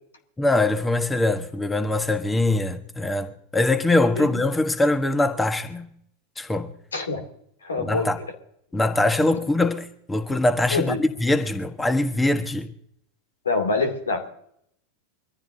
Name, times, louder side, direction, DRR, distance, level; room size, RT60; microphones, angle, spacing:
voice 1, 0.4-5.9 6.4-6.7 7.8-8.2 8.7-12.7, left 2 dB, 10° left, 1.4 m, -23 dB
voice 2, 6.9-7.2 7.6-8.1 10.7-11.0 13.4-14.3, left 3 dB, 85° left, 2.9 m, -25 dB
24.5 x 15.0 x 2.8 m
hypercardioid pair, 90°, 0 cm